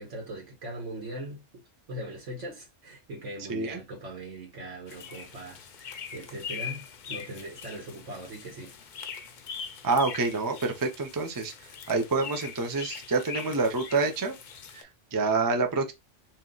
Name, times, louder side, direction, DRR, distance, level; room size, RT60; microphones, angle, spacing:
voice 1, 0.0-1.4 1.9-8.7, right 1 dB, 80° right, 1.5 m, -40 dB
sound 1, 4.9-14.8, left 6 dB, 55° left, 0.6 m, -42 dB
voice 2, 9.8-11.5 11.9-14.3 14.7-15.9, right 3 dB, 25° right, 0.4 m, -27 dB
3.1 x 2.8 x 3.8 m
omnidirectional pair, 1.2 m